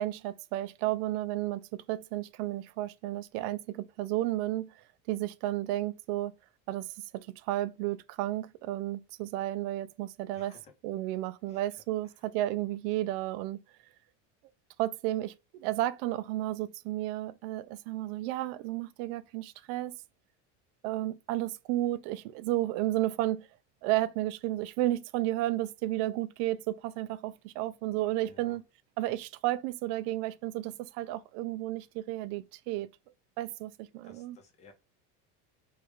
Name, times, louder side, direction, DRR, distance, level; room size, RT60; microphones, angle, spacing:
voice 1, 0.0-4.7 5.1-6.3 6.7-10.5 10.8-13.6 14.8-20.0 20.8-23.5 23.8-28.6 29.0-32.9 33.4-34.4, right 15 dB, 70° right, 0.5 m, -32 dB
voice 2, 10.3-10.7 11.0-11.2 11.5-12.2 28.3-28.6 34.0-34.7, left 4 dB, 20° left, 0.8 m, -58 dB
3.2 x 2.4 x 3.5 m
cardioid pair, 150°, 33 cm